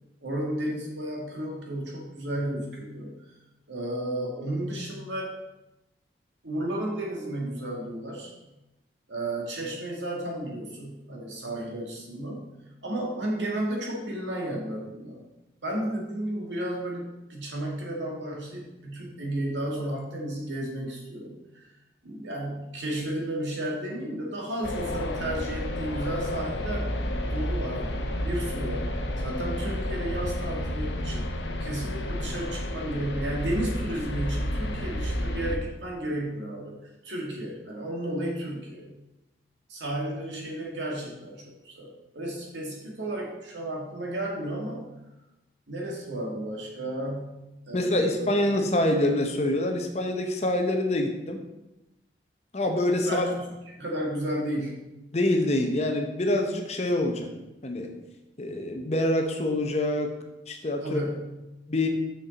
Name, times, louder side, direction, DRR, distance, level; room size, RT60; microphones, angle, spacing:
voice 1, 0.2-3.3 3.7-5.3 6.4-8.3 9.1-12.5 12.8-15.2 15.6-21.7 22.0-27.0 27.3-28.9 29.2-36.8 37.0-38.9 39.7-44.9 45.7-48.3 53.0-54.9 60.8-61.3, right 1 dB, 85° right, -2 dB, 2.0 m, -33 dB
sound 1, 24.6-35.6, left 1 dB, 80° left, 0.8 m, -31 dB
voice 2, 47.7-51.4 52.5-53.3 55.1-57.3 57.6-57.9 58.4-60.1 60.5-61.0 61.7-61.9, left 1 dB, 35° left, 4 dB, 0.8 m, -26 dB
6.7 x 6.3 x 4.1 m, 0.97 s
head